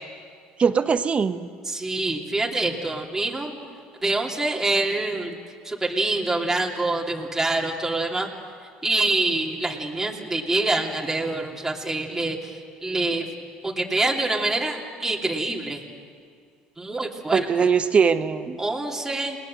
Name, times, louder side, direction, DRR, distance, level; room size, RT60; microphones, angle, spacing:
voice 1, 0.6-1.5 17.3-18.6, right 6 dB, 35° right, 10 dB, 1.3 m, -21 dB
voice 2, 1.7-3.5 4.0-5.4 5.6-8.3 8.8-12.5 12.8-13.3 13.6-15.8 16.8-17.4 18.6-19.4, right 2 dB, 10° right, -2 dB, 3.0 m, -25 dB
29.0 x 19.5 x 7.8 m, 2.2 s
supercardioid pair, 85°, 4 cm